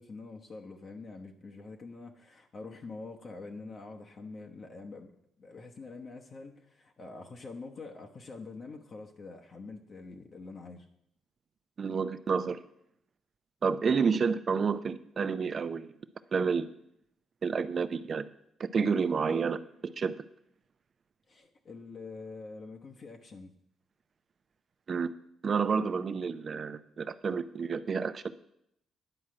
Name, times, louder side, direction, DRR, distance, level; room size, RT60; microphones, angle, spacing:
voice 1, 0.0-5.1 5.4-10.9 21.3-23.5, left 3 dB, 45° left, 1 dB, 1.0 m, -45 dB
voice 2, 11.8-12.6 13.6-15.9 16.3-16.7 17.4-18.3 18.6-20.2 24.9-25.1 25.4-28.3, right 5 dB, 45° right, 13 dB, 0.6 m, -30 dB
10.0 x 4.7 x 7.6 m, 0.76 s
cardioid pair, 90°, 0 cm